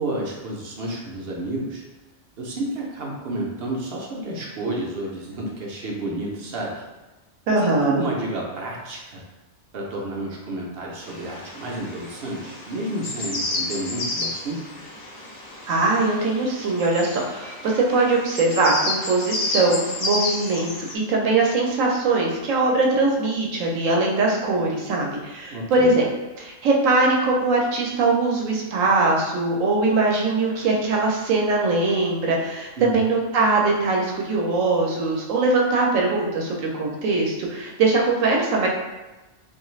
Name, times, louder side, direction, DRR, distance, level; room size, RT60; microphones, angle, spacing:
voice 1, 0.0-1.8 2.4-6.8 7.5-9.2 9.7-14.6 25.5-25.9 32.8-33.0, right 1 dB, 60° right, -2 dB, 0.7 m, -30 dB
voice 2, 7.5-8.0 15.7-26.0 26.4-38.7, right 3 dB, 85° right, -1 dB, 1.0 m, -21 dB
sound 1, 11.0-21.0, left 2 dB, 50° left, 0.5 m, -31 dB
2.5 x 2.3 x 3.1 m, 1.1 s
omnidirectional pair, 1.3 m